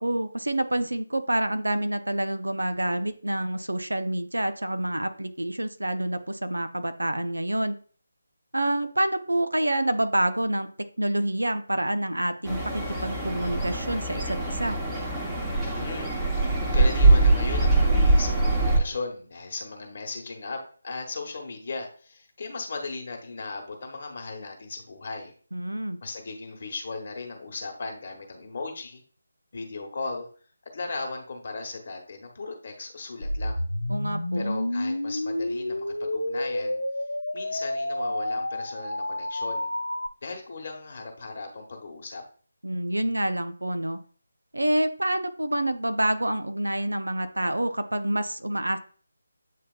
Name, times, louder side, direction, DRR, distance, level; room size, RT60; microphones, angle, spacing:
voice 1, 0.0-7.8 8.5-10.7 11.0-14.8 25.5-26.0 33.9-34.5 42.6-44.0 44.5-48.8, right 1 dB, 80° right, 9 dB, 0.6 m, -27 dB
sound 1, 12.4-18.8, right 2 dB, 5° right, 0.9 m, -23 dB
voice 2, 15.8-16.1 16.7-25.3 26.0-29.0 29.5-30.3 30.7-33.6 34.3-36.8 37.3-39.7 40.2-42.2, left 3 dB, 45° left, 2 dB, 1.2 m, -37 dB
going-up-chirp, 33.2-40.1, left 1 dB, 85° left, 0.5 m, -30 dB
8.2 x 2.8 x 2.3 m, 0.43 s
figure-of-eight pair, 155°, 0 cm